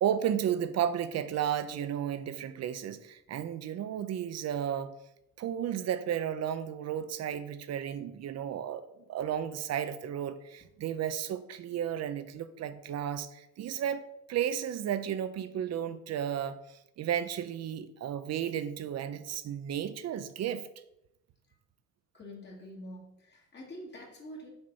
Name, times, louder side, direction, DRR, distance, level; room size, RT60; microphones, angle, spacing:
voice 1, 0.0-4.9 5.4-14.0 14.3-20.7, right 9 dB, 55° right, 12 dB, 0.6 m, -33 dB
voice 2, 22.1-24.5, equal, 35° left, -2 dB, 2.0 m, -46 dB
6.9 x 5.3 x 4.0 m, 0.83 s
cardioid pair, 135°, 30 cm